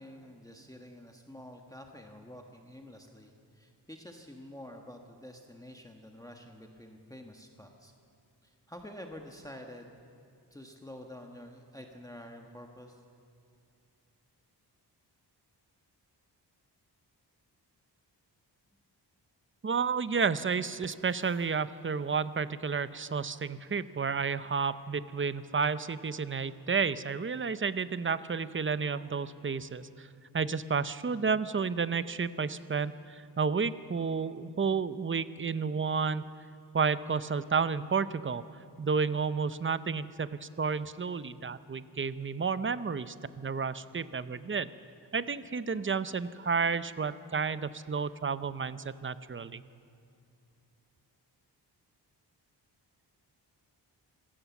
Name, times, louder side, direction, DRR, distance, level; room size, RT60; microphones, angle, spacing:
voice 1, 0.0-7.9 8.4-9.9 10.5-13.0, left 1 dB, 10° left, 3 dB, 1.3 m, -48 dB
voice 2, 19.6-30.1 30.3-36.3 36.7-38.4 38.8-44.7 45.1-49.6, right 5 dB, 30° right, 14 dB, 0.6 m, -31 dB
26.0 x 16.5 x 7.2 m, 2.6 s
wide cardioid pair, 145°, 42 cm